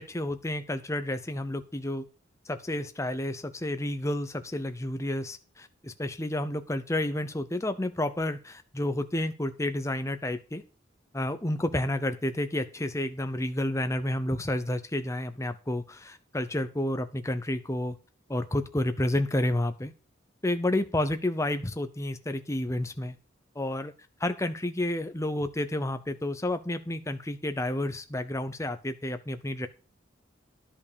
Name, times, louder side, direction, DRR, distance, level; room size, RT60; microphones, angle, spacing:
voice 1, 0.0-2.0 2.5-10.6 11.1-18.0 18.3-19.9 20.4-23.2 23.6-23.9 24.2-29.7, left 1 dB, 15° left, 10 dB, 0.7 m, -30 dB
11.0 x 5.5 x 6.8 m, 0.34 s
head